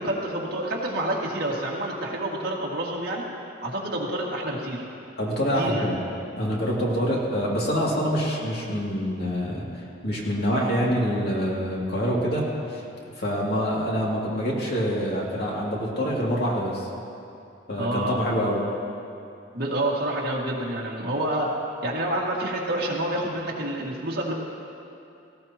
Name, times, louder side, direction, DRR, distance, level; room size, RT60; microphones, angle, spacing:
voice 1, 0.0-3.2 3.6-4.9 5.6-5.9 10.5-10.6 17.8-18.2 19.5-24.3, right 1 dB, 50° right, -3 dB, 2.1 m, -28 dB
voice 2, 5.1-6.0 6.4-12.8 13.1-16.9 17.7-18.7, equal, 55° left, -4 dB, 2.5 m, -26 dB
18.0 x 16.5 x 3.0 m, 2.6 s
head